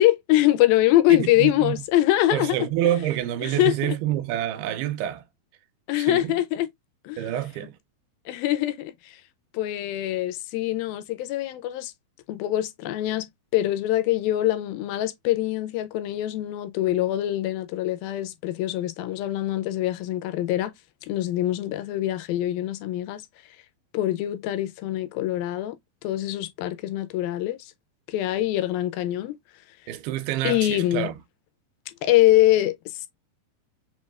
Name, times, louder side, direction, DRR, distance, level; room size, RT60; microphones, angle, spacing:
voice 1, 0.0-2.7 3.4-4.0 5.9-6.7 7.0-7.3 8.3-9.2 9.5-11.9 12.3-13.3 13.5-20.7 21.0-23.2 23.9-25.8 26.0-27.7 28.1-29.4 30.4-31.1 32.0-33.1, left 14 dB, 80° left, 2.2 m, -24 dB
voice 2, 1.2-1.8 2.3-5.2 5.9-6.3 7.2-7.8 29.9-31.1, right 13 dB, 90° right, 2.5 m, -27 dB
6.2 x 2.3 x 2.4 m
omnidirectional pair, 4.4 m